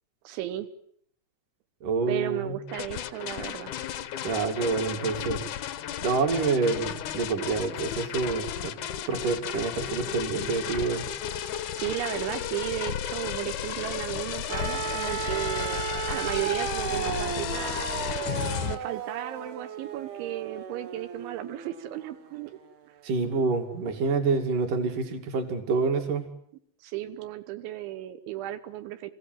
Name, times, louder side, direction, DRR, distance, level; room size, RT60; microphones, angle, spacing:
voice 1, 0.3-0.7 2.1-3.7 11.8-18.1 18.6-22.5 26.8-29.1, right 13 dB, 85° right, 9 dB, 3.6 m, -34 dB
voice 2, 1.8-2.6 4.2-5.4 6.0-8.8 9.1-11.1 23.0-26.3, right 4 dB, 50° right, 5 dB, 3.6 m, -27 dB
sound 1, 2.7-18.8, left 10 dB, 85° left, 1.7 m, -34 dB
sound 2, 14.5-22.6 23.8-23.9, right 7 dB, 65° right, 1.8 m, -35 dB
28.5 x 16.0 x 9.2 m, 0.69 s
omnidirectional pair, 5.2 m